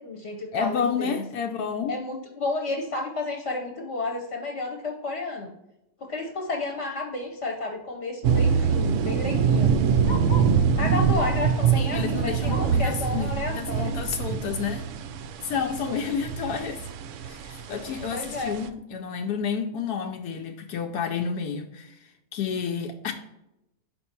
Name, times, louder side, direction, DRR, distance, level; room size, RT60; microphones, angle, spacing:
voice 1, 0.0-1.2 1.9-5.5 6.1-9.8 10.8-13.9 15.5-16.0 18.1-18.5, left 3 dB, 50° left, 1 dB, 1.1 m, -31 dB
voice 2, 0.5-2.0 11.8-14.9 15.4-16.8 17.2-23.1, left 6 dB, 80° left, 4 dB, 1.1 m, -30 dB
Bark, 6.9-7.2 7.5-7.6 7.8-10.6 11.1-11.5 11.9-12.9 13.4-13.5 13.8-13.9 14.6-14.7, left 2 dB, 25° left, 0.9 m, -40 dB
sound 1, 8.2-18.7, right 6 dB, 70° right, 0.7 m, -24 dB
5.4 x 4.4 x 4.4 m, 0.90 s
omnidirectional pair, 1.7 m